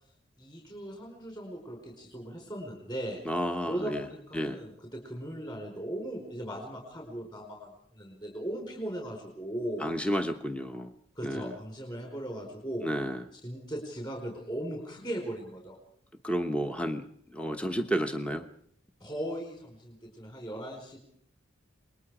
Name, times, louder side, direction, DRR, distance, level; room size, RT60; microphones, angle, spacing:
voice 1, 0.4-3.2 3.7-9.9 11.1-12.9 13.4-15.8 19.0-21.0, right 1 dB, 25° left, 1 dB, 4.7 m, -38 dB
voice 2, 3.2-4.1 4.3-4.6 9.8-10.9 11.2-11.5 12.8-13.2 16.2-17.0 17.3-18.4, equal, 5° left, 6 dB, 1.0 m, -31 dB
28.5 x 21.0 x 5.0 m, 0.66 s
head